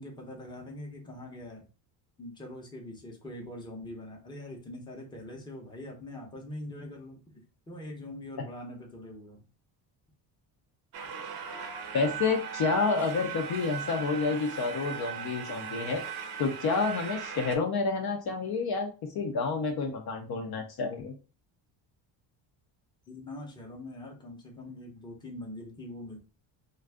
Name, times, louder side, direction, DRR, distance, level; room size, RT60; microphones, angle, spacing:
voice 1, 0.0-1.6 2.2-7.4 7.7-9.4 23.1-26.2, left 1 dB, 10° left, -1 dB, 0.7 m, -43 dB
sound 1, 10.9-17.6, right 7 dB, 50° right, 0.6 m, -38 dB
voice 2, 11.9-16.0 16.4-21.2, left 4 dB, 50° left, 4 dB, 0.6 m, -29 dB
2.5 x 2.3 x 3.3 m, 0.33 s
cardioid pair, 135°, 47 cm